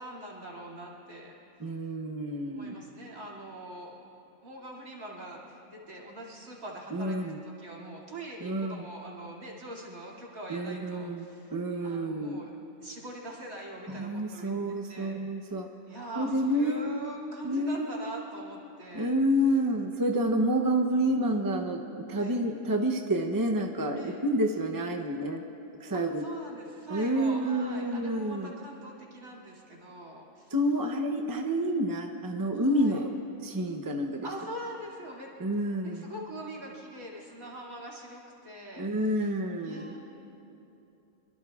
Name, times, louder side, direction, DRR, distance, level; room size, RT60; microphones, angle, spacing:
voice 1, 0.0-1.4 2.5-3.9 4.4-7.2 7.6-11.5 11.8-12.5 12.8-14.5 14.9-15.2 15.9-19.1 22.2-22.4 23.9-24.2 25.9-30.5 32.5-33.0 34.2-35.3 35.8-39.2 39.6-40.0, right 1 dB, 75° right, -4 dB, 3.1 m, -43 dB
voice 2, 1.6-2.7 6.9-7.4 8.4-8.8 10.5-12.4 13.9-15.7 16.2-16.8 17.4-18.0 18.9-25.4 25.8-26.2 26.9-28.5 30.5-34.3 35.4-36.1 38.8-40.0, right 1 dB, 20° right, 3 dB, 0.5 m, -29 dB
25.5 x 23.5 x 2.4 m, 2.9 s
omnidirectional pair, 1.5 m